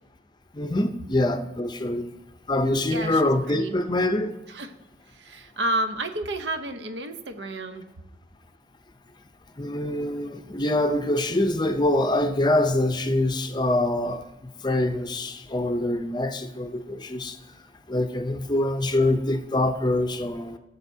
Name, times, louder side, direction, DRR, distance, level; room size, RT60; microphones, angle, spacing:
voice 1, 0.5-2.1 2.5-4.3 9.6-14.2 14.6-17.4 17.9-20.6, left 1 dB, 25° left, 0.6 m, -24 dB
voice 2, 2.9-3.7 4.5-4.7 5.1-7.9, right 1 dB, 80° right, 0.8 m, -31 dB
19.5 x 6.8 x 2.7 m
head